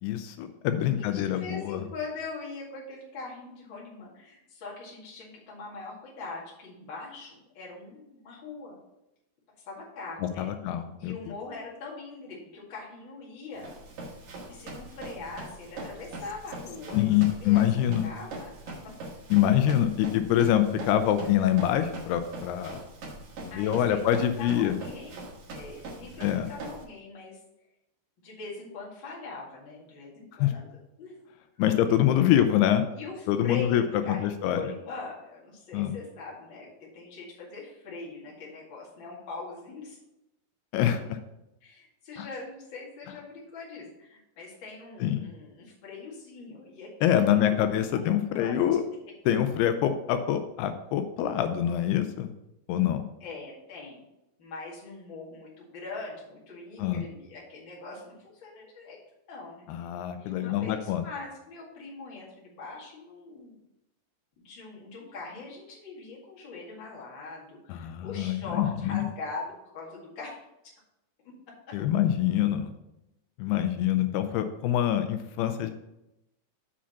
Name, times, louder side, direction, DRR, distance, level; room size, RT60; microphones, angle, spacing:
voice 1, 0.0-1.8 10.4-11.2 16.9-18.1 19.3-22.8 23.4-24.8 26.2-26.5 30.4-30.5 31.6-32.9 33.3-34.6 35.7-36.0 40.7-41.2 42.2-42.3 45.0-45.3 47.0-48.8 49.3-52.3 52.7-53.0 56.8-57.0 59.7-61.1 67.7-69.0 71.7-72.7 73.4-75.7, left 11 dB, 85° left, 8 dB, 2.6 m, -25 dB
voice 2, 1.1-8.8 9.6-10.5 11.0-13.7 14.5-18.9 23.5-25.2 25.5-27.4 28.2-31.2 32.1-32.4 32.9-40.0 41.6-47.8 48.3-48.8 53.2-54.0 54.4-59.0 59.3-59.9 60.2-63.5 64.4-70.3 71.7-71.8, left 3 dB, 35° left, -4 dB, 2.2 m, -42 dB
Run, 13.6-26.8, right 2 dB, 55° right, 2.5 m, -42 dB
7.0 x 5.0 x 5.6 m, 0.89 s
omnidirectional pair, 4.6 m